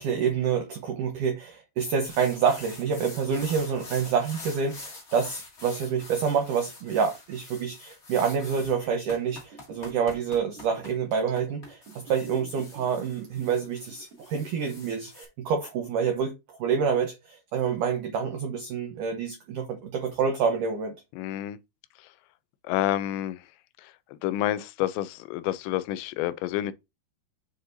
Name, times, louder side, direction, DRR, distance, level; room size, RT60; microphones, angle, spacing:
voice 1, 0.0-16.3 16.6-20.9, right 6 dB, 90° right, 1.8 m, -27 dB
sound 1, 2.1-15.2, left 3 dB, 35° left, 1.5 m, -45 dB
Liquid, 8.5-14.7 15.0-15.1, right 4 dB, 40° right, 2.6 m, -49 dB
voice 2, 21.2-21.6 22.7-23.4 24.2-26.7, left 13 dB, 85° left, 2.8 m, -28 dB
7.3 x 6.6 x 2.6 m
omnidirectional pair, 5.0 m